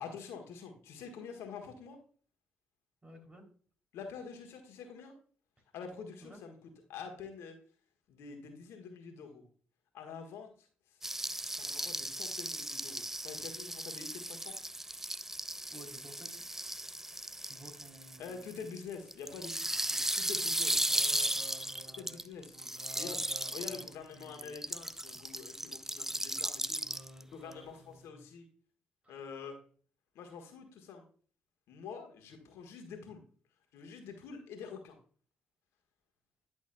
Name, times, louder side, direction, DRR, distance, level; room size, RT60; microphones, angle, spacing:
voice 1, 0.0-2.0 3.9-5.1 5.7-6.5 6.9-7.6 8.1-9.4 9.9-11.0 11.5-14.6 18.2-20.8 22.0-22.5 23.0-23.2 23.5-26.8 27.3-28.5 29.1-29.6 30.1-31.0 31.7-33.2 33.7-35.0, left 5 dB, 75° left, 4 dB, 1.5 m, -46 dB
voice 2, 3.0-3.5 6.2-6.4 15.7-16.7 17.4-18.5 20.8-23.8 24.1-24.5 25.3-25.4 26.1-26.2 26.8-28.3 29.0-29.2, right 1 dB, 25° right, 3 dB, 3.1 m, -54 dB
sound 1, 11.0-23.9 24.2-27.2 27.5-27.6, right 1 dB, 10° right, 0.4 m, -36 dB
10.5 x 6.1 x 2.2 m, 0.43 s
hypercardioid pair, 45°, 5 cm